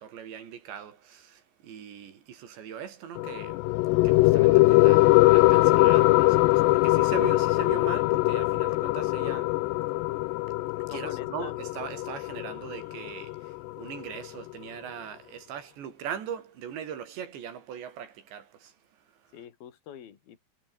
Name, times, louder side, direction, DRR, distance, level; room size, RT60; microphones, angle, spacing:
voice 1, 0.0-3.7 4.0-9.7 10.5-19.4, right 8 dB, 75° right, 5.7 m, -40 dB
sound 1, 3.2-14.2, left 21 dB, 80° left, 2.7 m, -22 dB
voice 2, 10.9-11.5 19.3-20.4, left 10 dB, 60° left, 4.5 m, -44 dB
omnidirectional pair, 5.1 m